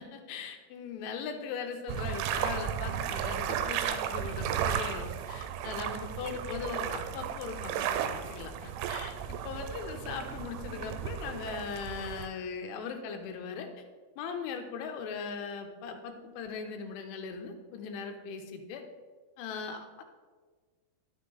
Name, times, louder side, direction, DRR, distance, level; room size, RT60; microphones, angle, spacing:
voice 1, 0.0-13.7 14.2-18.8 19.4-20.0, left 5 dB, 85° left, 5 dB, 3.2 m, -39 dB
sound 1, 1.9-12.3, right 9 dB, 85° right, 2.9 m, -34 dB
11.5 x 6.2 x 3.8 m, 1.4 s
omnidirectional pair, 5.5 m